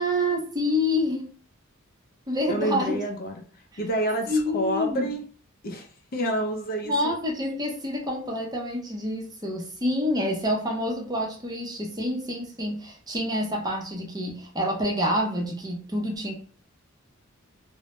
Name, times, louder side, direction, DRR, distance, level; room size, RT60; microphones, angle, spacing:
voice 1, 0.0-1.3 2.3-3.0 4.3-5.1 6.8-16.3, left 1 dB, 20° right, -1 dB, 0.6 m, -27 dB
voice 2, 2.5-3.4 3.8-5.2 5.6-6.9, right 1 dB, 45° left, 3 dB, 0.5 m, -28 dB
2.1 x 2.0 x 2.9 m, 0.42 s
head